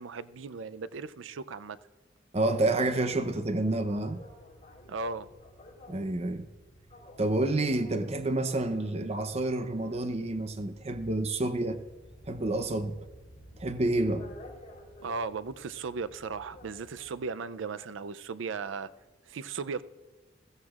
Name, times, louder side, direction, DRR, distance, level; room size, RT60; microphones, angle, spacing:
voice 1, 0.0-1.8 4.9-5.3 15.0-18.9 19.3-19.8, right 4 dB, 85° right, 0.5 m, -36 dB
voice 2, 2.3-4.2 5.9-6.5 7.2-11.8 12.3-13.0 13.6-14.3, right 2 dB, 35° right, 0.6 m, -29 dB
sound 1, 2.7-17.2, left 1 dB, 35° left, 3.7 m, -51 dB
20.5 x 15.0 x 2.4 m
head